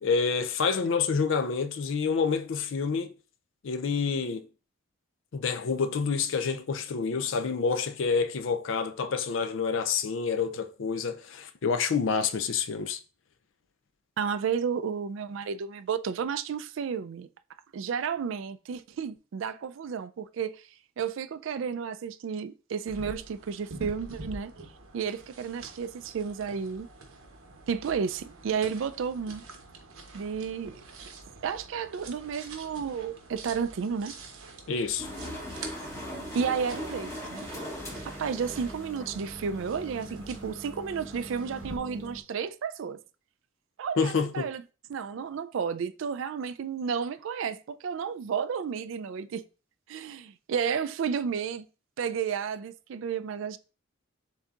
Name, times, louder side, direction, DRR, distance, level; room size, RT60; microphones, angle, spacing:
voice 1, 0.0-3.1 3.6-4.5 5.3-13.0 34.7-35.1 44.0-44.5, left 5 dB, 70° left, 0.4 m, -28 dB
voice 2, 14.2-17.3 17.7-20.6 21.0-24.5 24.9-26.9 27.7-29.4 30.1-30.8 31.4-34.1 36.3-37.5 38.0-43.0 43.8-44.6 44.9-49.4 49.9-51.7 52.0-53.6, right 6 dB, 70° right, 0.3 m, -32 dB
sound 1, 22.9-41.8, right 3 dB, 90° right, 0.9 m, -47 dB
sound 2, 35.0-42.2, equal, 15° left, 1.0 m, -40 dB
7.1 x 2.7 x 2.4 m
head